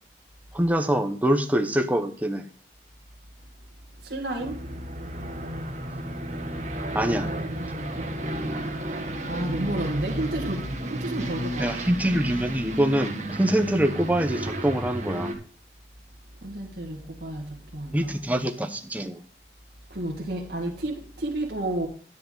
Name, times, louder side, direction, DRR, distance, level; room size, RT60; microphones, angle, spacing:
voice 1, 0.5-2.5 6.9-7.3 11.2-11.3 11.6-15.3 17.9-19.2, right 1 dB, 10° right, 0.8 m, -24 dB
voice 2, 4.0-4.6 7.6-8.1 9.3-11.8 16.4-18.1 19.9-21.9, right 1 dB, 70° right, 1.8 m, -31 dB
Aircraft, 4.4-15.4, right 1 dB, 40° right, 1.6 m, -32 dB
10.5 x 9.5 x 3.8 m
head